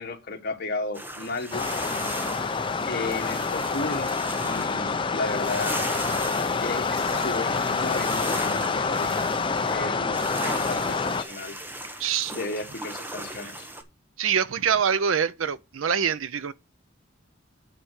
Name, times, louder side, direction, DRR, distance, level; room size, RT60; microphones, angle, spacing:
voice 1, 0.0-1.7 2.9-4.1 4.4-5.8 6.6-9.1 9.7-10.2 10.4-11.6 11.9-12.0 12.3-13.7, left 3 dB, 50° left, 1.5 m, -33 dB
sound 1, 0.9-13.8, right 1 dB, 10° right, 1.0 m, -37 dB
sound 2, 1.5-11.2, left 4 dB, 25° left, 0.6 m, -27 dB
voice 2, 12.0-12.4 13.4-13.5 14.2-16.5, right 7 dB, 85° right, 0.6 m, -25 dB
9.1 x 4.2 x 6.4 m
head